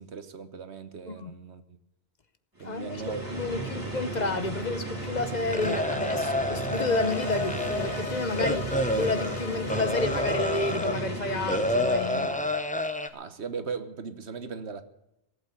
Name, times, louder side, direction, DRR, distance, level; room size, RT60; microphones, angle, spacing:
voice 1, 0.0-1.6 2.6-3.8 13.1-14.8, right 5 dB, 70° right, 1.4 m, -38 dB
voice 2, 2.6-12.4, left 3 dB, 45° left, 0.9 m, -31 dB
sound 1, 2.6-12.6, right 2 dB, 15° right, 3.1 m, -35 dB
sound 2, 5.5-11.0 11.5-13.1, left 1 dB, 10° left, 0.7 m, -29 dB
sound 3, 6.6-11.9, left 5 dB, 90° left, 1.7 m, -40 dB
18.0 x 8.5 x 8.2 m
omnidirectional pair, 1.2 m